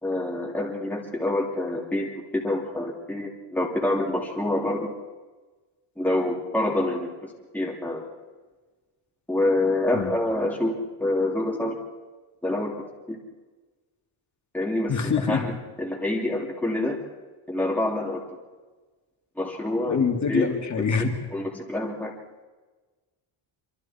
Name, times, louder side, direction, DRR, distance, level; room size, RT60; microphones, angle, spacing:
voice 1, 0.0-4.9 6.0-8.0 9.3-11.8 12.4-12.7 13.1-13.2 14.5-15.5 15.8-17.0 17.5-18.2 19.4-20.0 20.3-20.5 21.3-22.1, left 1 dB, 5° left, -2 dB, 2.9 m, -27 dB
voice 2, 14.9-15.4 19.8-21.1, left 5 dB, 35° left, 4 dB, 2.6 m, -24 dB
27.0 x 24.0 x 4.4 m, 1.3 s
cardioid pair, 160°, 48 cm